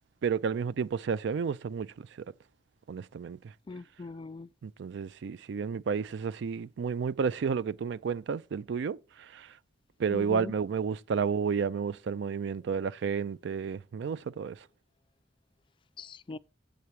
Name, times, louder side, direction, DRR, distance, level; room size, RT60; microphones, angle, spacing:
voice 1, 0.2-2.1 2.9-3.4 4.6-9.0 9.3-9.5 10.0-14.6, right 6 dB, 65° right, 0.4 m, -31 dB
voice 2, 3.7-4.5 10.1-10.5 16.0-16.4, left 3 dB, 25° left, 0.3 m, -40 dB
7.6 x 6.9 x 4.7 m
head